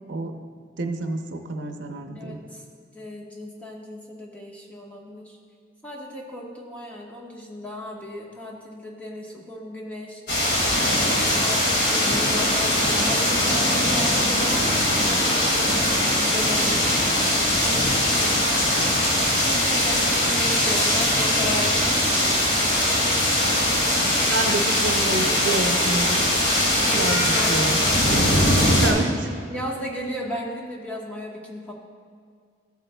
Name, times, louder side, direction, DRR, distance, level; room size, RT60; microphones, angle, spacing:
voice 1, 0.8-2.4 23.4-23.5 24.3-26.2 26.9-27.8 28.8-29.3, right 2 dB, 75° right, 5 dB, 0.7 m, -28 dB
voice 2, 2.1-2.6 2.9-5.4 5.8-10.5 10.9-17.0 17.6-18.5 19.3-22.5 26.9-27.6 29.5-31.7, equal, 10° left, -3 dB, 1.2 m, -35 dB
sound 1, 10.3-28.9, left 1 dB, 60° left, 2.2 m, -21 dB
14.5 x 8.1 x 2.3 m, 2.2 s
head